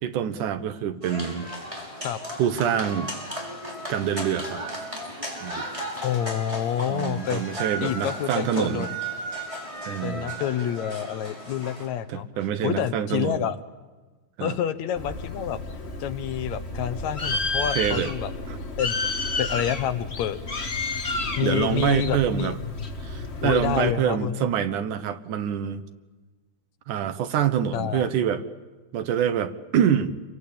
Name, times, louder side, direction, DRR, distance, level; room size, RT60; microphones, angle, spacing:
voice 1, 0.0-1.5 2.4-3.1 3.9-4.6 5.4-5.7 6.9-8.9 9.8-10.4 12.1-13.5 14.4-14.6 17.7-18.1 18.5-18.6 21.4-22.6 23.0-25.8 26.9-28.4 28.9-30.2, right 9 dB, 85° right, 10 dB, 2.8 m, -26 dB
sound 1, 1.0-11.9, right 1 dB, 10° right, 5.8 m, -35 dB
voice 2, 6.0-7.4 7.8-8.9 10.0-12.3 12.6-13.6 14.4-15.6 16.0-18.3 18.8-19.0 19.4-20.4 21.4-22.6 23.4-24.5 27.7-28.1, left 10 dB, 70° left, 11 dB, 2.2 m, -28 dB
Bird, 15.0-23.9, left 3 dB, 25° left, 1.6 m, -31 dB
29.0 x 23.5 x 8.7 m, 1.3 s
omnidirectional pair, 3.5 m